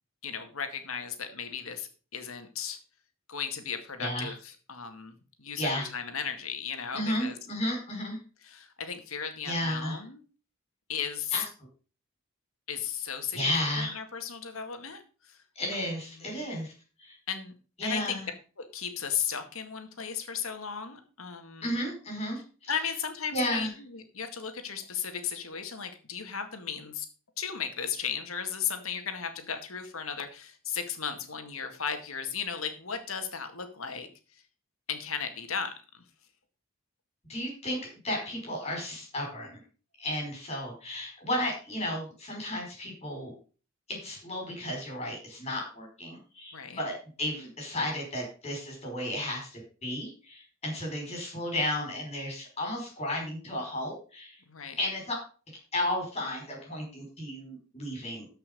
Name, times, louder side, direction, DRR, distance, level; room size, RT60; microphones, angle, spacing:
voice 1, 0.2-2.8 3.3-7.4 8.4-10.2 10.9-11.4 12.7-15.4 15.7-15.8 16.1-16.4 17.3-17.5 17.8-18.2 18.6-21.7 22.7-27.1 27.4-34.4 34.9-35.7 46.5-46.8 54.5-54.8, left 7 dB, 85° left, 7 dB, 2.0 m, -36 dB
voice 2, 4.0-4.3 5.6-5.9 6.9-8.2 9.4-10.0 11.3-11.4 13.3-14.0 15.5-16.7 17.0-17.2 17.8-18.3 21.6-22.7 23.3-23.7 37.3-37.8 38.0-39.6 40.0-43.3 43.9-54.4 54.8-55.1 55.7-58.3, left 1 dB, 30° left, 0 dB, 5.0 m, -33 dB
13.5 x 5.7 x 5.3 m, 0.37 s
head